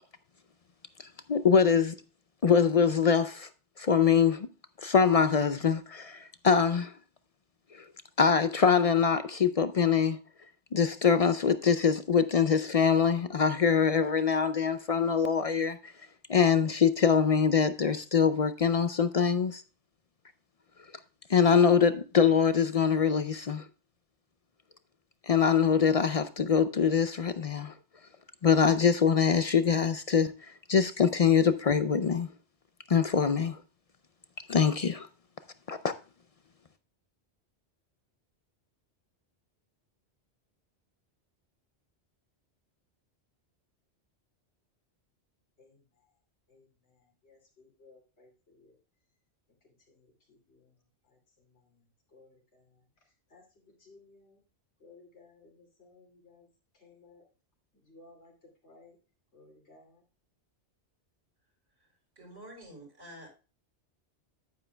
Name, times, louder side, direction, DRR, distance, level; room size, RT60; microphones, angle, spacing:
voice 1, 1.3-2.0 2.4-3.5 3.8-4.5 4.8-6.9 8.2-10.2 10.7-15.9 16.3-19.6 21.3-23.7 25.3-27.7 28.4-30.3 30.7-32.3 32.9-33.6 34.5-35.1 35.7-35.9, left 6 dB, 50° left, 0.4 m, -24 dB
voice 2, 47.2-48.7 50.3-50.7 52.1-52.6 53.3-53.4 53.8-54.4 54.8-56.5 56.8-57.2 57.9-58.3 58.6-59.0 59.3-60.0, left 3 dB, 85° left, 2.9 m, -58 dB
voice 3, 62.2-63.3, right 1 dB, 70° right, 4.8 m, -48 dB
10.0 x 9.3 x 2.2 m
omnidirectional pair, 1.1 m